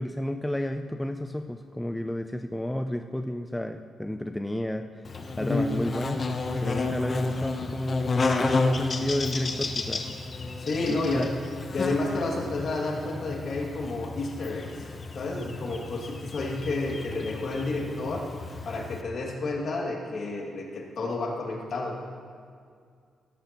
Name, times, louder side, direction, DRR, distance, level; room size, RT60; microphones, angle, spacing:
voice 1, 0.0-5.1 5.4-6.2 6.6-8.1 8.4-10.0 10.9-11.3, left 1 dB, 5° left, 6 dB, 0.4 m, -31 dB
Buzz, 5.0-19.0, left 3 dB, 35° left, 0.9 m, -32 dB
voice 2, 5.4-5.7 10.6-11.3 11.7-14.9 15.1-18.2 18.6-22.0, left 2 dB, 55° left, -1 dB, 2.2 m, -30 dB
17.0 x 13.5 x 3.0 m, 2.2 s
cardioid pair, 140°, 0 cm